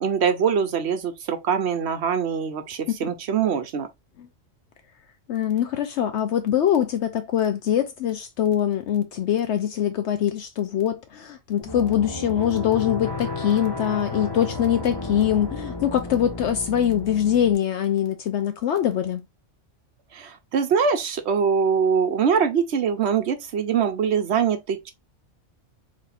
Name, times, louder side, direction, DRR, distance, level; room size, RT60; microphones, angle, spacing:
voice 1, 0.0-3.9 20.1-24.9, right 7 dB, 65° right, 0.9 m, -23 dB
voice 2, 5.3-19.2, left 10 dB, 70° left, 0.9 m, -23 dB
sound 1, 11.6-17.5, left 3 dB, 25° left, 0.8 m, -33 dB
3.2 x 2.6 x 4.1 m
omnidirectional pair, 1.3 m